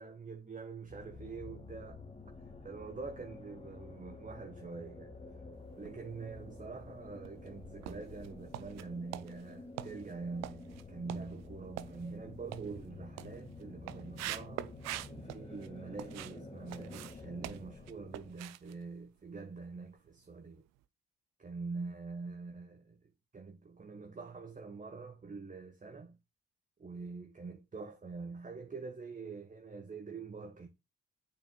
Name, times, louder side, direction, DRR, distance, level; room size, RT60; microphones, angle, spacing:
voice 1, 0.0-2.0 2.6-5.1 5.8-14.7 15.1-20.6 21.4-23.0 23.3-26.2 26.8-30.7, right 4 dB, 25° right, 1.2 m, -45 dB
sound 1, 0.9-18.3, left 3 dB, 20° left, 1.8 m, -50 dB
sound 2, 5.7-6.4 6.9-16.4 16.7-19.8 20.1-20.3 20.8-20.9, right 14 dB, 65° right, 0.6 m, -46 dB
8.5 x 6.7 x 2.2 m
hypercardioid pair, 40°, 29 cm